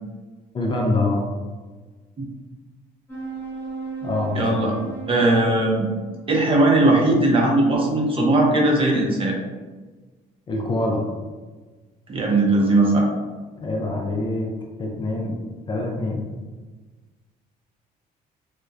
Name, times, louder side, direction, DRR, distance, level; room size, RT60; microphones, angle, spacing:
voice 1, 0.5-1.2 4.0-4.7 10.5-11.0 13.6-14.5 14.8-15.3 15.7-16.3, left 2 dB, 30° left, 0 dB, 0.4 m, -25 dB
sound 1, 3.1-7.9, right 4 dB, 10° left, 1.1 m, -37 dB
voice 2, 4.3-4.7 5.1-5.9 6.3-9.4 12.1-13.1, right 2 dB, 30° right, -1 dB, 0.6 m, -18 dB
2.6 x 2.0 x 2.3 m, 1.3 s
cardioid pair, 110°, 17 cm